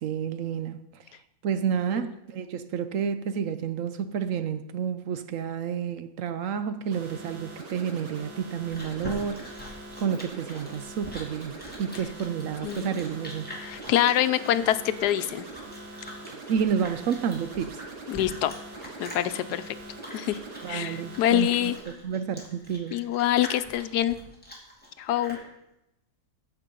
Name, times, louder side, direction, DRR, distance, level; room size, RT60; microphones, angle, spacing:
voice 1, 0.0-1.0 1.4-9.5 10.0-13.5 16.3-17.8 20.6-23.0, right 7 dB, 65° right, 0.9 m, -30 dB
sound 1, 6.9-21.8, right 2 dB, 90° right, 2.3 m, -43 dB
Chewing mastication, 8.2-25.5, left 1 dB, 5° left, 2.5 m, -44 dB
voice 2, 12.6-12.9 13.6-15.5 18.1-18.5 19.0-19.7 20.1-20.4 20.7-21.8 22.9-24.2 25.0-25.4, left 12 dB, 90° left, 1.2 m, -25 dB
14.5 x 5.9 x 5.3 m
omnidirectional pair, 1.7 m